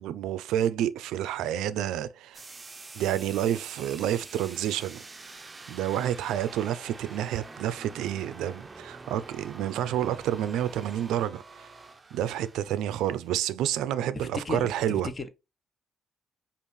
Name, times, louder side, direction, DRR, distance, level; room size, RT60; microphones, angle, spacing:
voice 1, 0.0-2.4 2.9-5.0 5.7-11.7 12.1-15.1, right 11 dB, 90° right, 0.4 m, -29 dB
sound 1, 2.3-13.3, right 3 dB, 25° right, 0.5 m, -46 dB
voice 2, 14.1-14.7 15.0-15.3, left 3 dB, 35° left, 0.8 m, -34 dB
5.2 x 2.4 x 3.1 m
cardioid pair, 90°, 0 cm